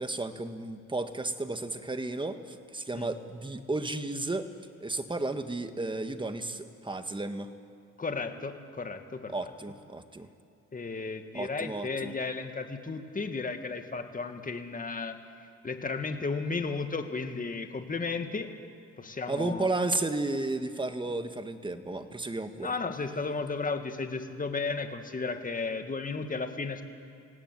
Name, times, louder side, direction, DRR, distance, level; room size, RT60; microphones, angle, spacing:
voice 1, 0.0-4.5 4.8-7.5 9.3-10.3 11.3-12.1 19.3-22.7, right 2 dB, 15° right, 8 dB, 1.6 m, -33 dB
voice 2, 8.0-9.3 10.7-15.2 15.6-18.5 19.0-19.7 22.6-26.8, left 4 dB, 25° left, 6 dB, 2.0 m, -34 dB
23.5 x 17.5 x 9.2 m, 2.5 s
cardioid pair, 90°, 30 cm